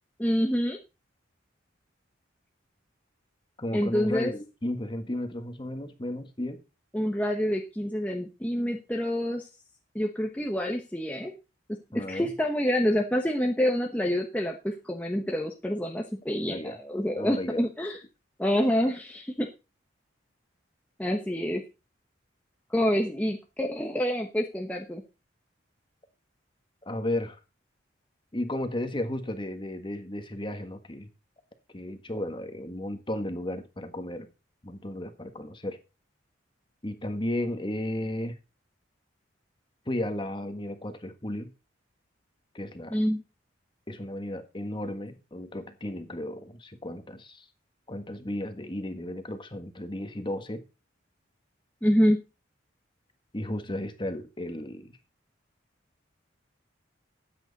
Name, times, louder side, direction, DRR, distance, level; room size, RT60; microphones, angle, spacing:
voice 1, 0.2-0.8 3.7-4.3 6.9-9.5 9.9-11.3 11.9-18.0 18.4-19.5 21.0-21.6 22.7-25.0 42.9-43.2 51.8-52.2, equal, 10° left, 1 dB, 1.1 m, -27 dB
voice 2, 3.6-6.6 11.9-12.3 16.4-16.8 17.1-17.7 26.8-27.4 28.3-31.1 31.7-34.3 34.6-35.8 36.8-38.4 39.8-41.5 42.5-42.9 43.9-47.5 47.9-50.6 53.3-55.0, left 1 dB, 25° left, 7 dB, 1.6 m, -34 dB
13.5 x 9.1 x 4.1 m, 0.30 s
head